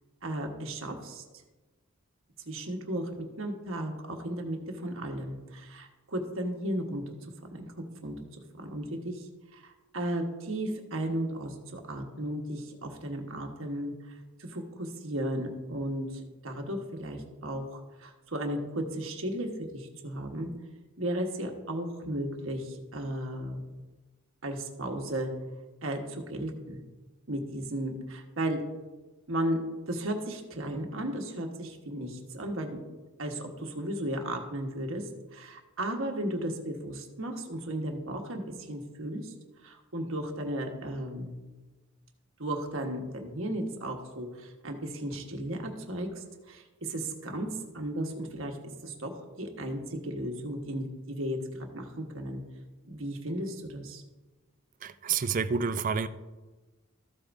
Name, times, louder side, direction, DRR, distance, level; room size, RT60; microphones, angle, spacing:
voice 1, 0.2-1.2 2.5-8.1 8.6-20.5 21.0-23.6 24.4-25.3 25.8-26.8 27.3-28.6 29.3-29.6 29.9-32.8 33.2-35.0 35.3-39.3 39.6-41.3 42.4-47.5 47.7-52.4 52.8-54.0, right 1 dB, 65° right, 3 dB, 1.3 m, -35 dB
voice 2, 54.8-56.1, right 5 dB, 35° right, 13 dB, 0.4 m, -29 dB
14.0 x 8.0 x 2.6 m, 1.2 s
head